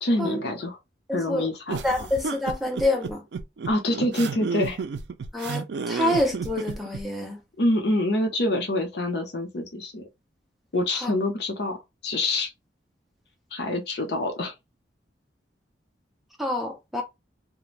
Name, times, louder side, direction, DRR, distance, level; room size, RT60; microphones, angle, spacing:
voice 1, 0.0-0.8 1.1-2.1 3.7-4.8 7.6-10.0 10.7-11.8 12.0-12.5 13.5-14.5, left 1 dB, 65° left, 0.7 m, -26 dB
voice 2, 1.1-1.5 1.8-3.2 5.3-7.4 10.9-11.1 16.4-17.0, left 1 dB, ahead, 0.6 m, -27 dB
sound 1, 1.7-7.0, right 5 dB, 65° right, 0.4 m, -31 dB
2.4 x 2.1 x 3.1 m
head